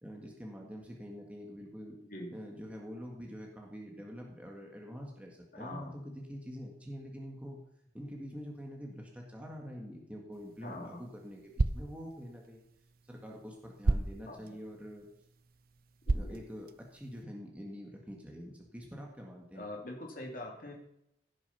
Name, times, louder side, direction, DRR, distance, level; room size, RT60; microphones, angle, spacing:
voice 1, 0.0-2.0 2.3-7.6 7.9-12.6 13.1-15.1 16.1-19.7, equal, 10° right, -1 dB, 1.8 m, -45 dB
voice 2, 5.5-5.9 10.6-11.0 14.3-14.4 16.1-16.4 19.5-20.7, left 1 dB, 50° left, -1 dB, 2.7 m, -43 dB
sound 1, 10.3-17.2, right 2 dB, 55° right, 0.6 m, -37 dB
16.5 x 7.0 x 5.7 m, 0.78 s
head